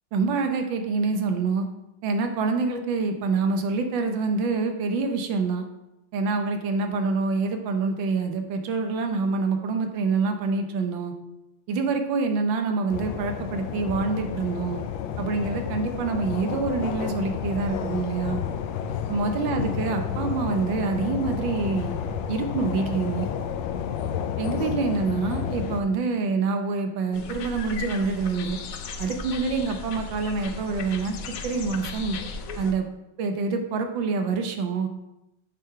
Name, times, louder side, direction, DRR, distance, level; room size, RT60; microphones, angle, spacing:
voice 1, 0.1-1.7 2.0-5.6 6.1-11.1 11.7-14.8 15.2-18.4 19.1-22.0 22.3-23.3 24.4-28.6 29.0-31.2 31.4-32.2 32.6-32.9 33.2-34.9, right 4 dB, 80° right, 5 dB, 1.5 m, -26 dB
sound 1, 12.9-25.8, left 8 dB, 80° left, 1.3 m, -31 dB
sound 2, 27.1-32.7, left 4 dB, 65° left, 0.9 m, -36 dB
7.6 x 3.7 x 5.5 m, 0.91 s
omnidirectional pair, 2.0 m